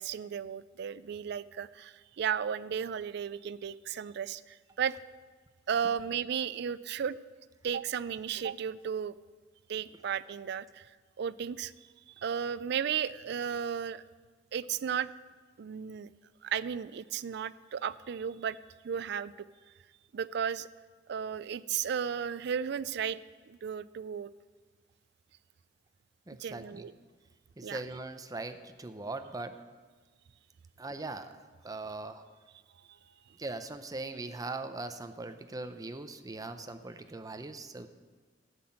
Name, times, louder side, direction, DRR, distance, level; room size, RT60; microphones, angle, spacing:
voice 1, 0.0-4.9 5.7-7.2 7.6-9.1 9.7-10.9 11.2-11.7 12.2-14.0 14.5-15.1 15.6-16.1 16.4-18.6 18.8-19.5 20.1-20.7 21.1-23.2 23.5-24.3 26.4-26.9 27.6-27.8, right 7 dB, 65° right, 17 dB, 0.4 m, -34 dB
voice 2, 26.3-26.9 27.6-29.6 30.8-32.2 33.4-37.9, right 2 dB, 20° right, 9 dB, 0.6 m, -40 dB
12.5 x 6.0 x 8.6 m, 1.4 s
head